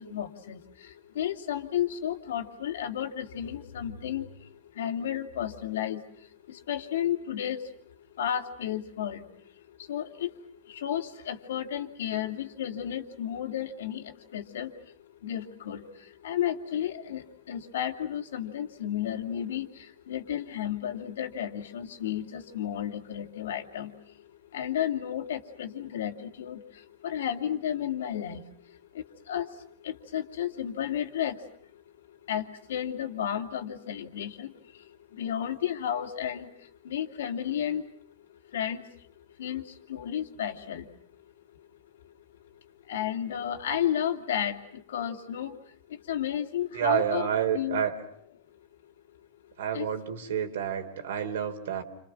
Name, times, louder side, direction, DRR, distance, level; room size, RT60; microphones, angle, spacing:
voice 1, 0.0-31.8 32.1-37.9 38.2-41.0 42.0-42.1 42.8-47.3 47.5-47.8 49.7-49.9, left 10 dB, 90° left, 5 dB, 2.7 m, -33 dB
voice 2, 46.7-48.0 49.6-51.8, right 9 dB, 80° right, 7 dB, 3.6 m, -29 dB
30.0 x 26.5 x 6.3 m, 0.67 s
supercardioid pair, 155°, 0 cm